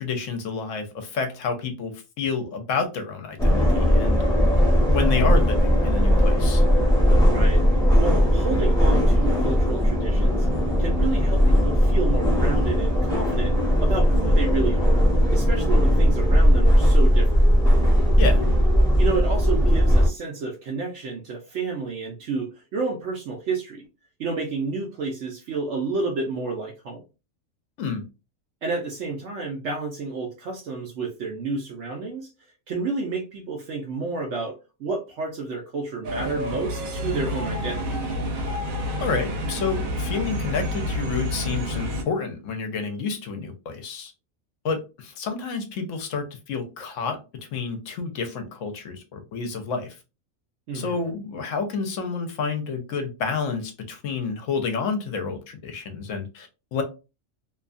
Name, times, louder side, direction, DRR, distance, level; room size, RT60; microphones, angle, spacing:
voice 1, 0.0-4.3 4.9-6.6 18.2-18.5 27.8-28.1 39.0-44.1 44.6-50.0 50.7-56.8, left 5 dB, 70° left, 1.0 m, -29 dB
sound 1, 3.4-20.1, equal, 5° left, 0.7 m, -18 dB
voice 2, 7.2-7.6 8.0-10.5 10.8-14.9 15.3-17.5 19.0-23.8 24.2-27.0 28.6-32.3 32.7-38.0 50.7-51.0, right 3 dB, 70° right, 0.9 m, -30 dB
sound 2, 36.0-42.0, equal, 85° right, 1.1 m, -28 dB
2.7 x 2.3 x 2.4 m
omnidirectional pair, 1.4 m